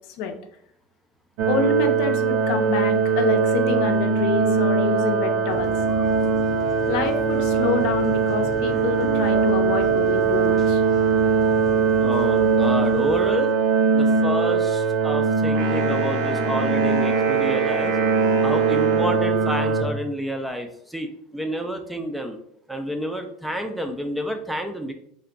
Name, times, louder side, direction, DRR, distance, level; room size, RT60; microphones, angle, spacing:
sound 1, 1.4-19.8, right 5 dB, 65° right, 0.5 m, -21 dB
voice 1, 1.5-5.8 6.9-10.8, left 5 dB, 60° left, 6 dB, 0.5 m, -27 dB
sound 2, 5.5-13.3, equal, 20° left, 0.7 m, -38 dB
voice 2, 12.0-13.5 13.9-18.0 18.4-22.4 22.7-24.9, equal, 5° right, 5 dB, 0.3 m, -29 dB
Wind instrument woodwind instrument, 15.5-19.8, right 4 dB, 80° right, 0.9 m, -30 dB
3.3 x 2.2 x 3.7 m, 0.69 s
supercardioid pair, 150°, 0 cm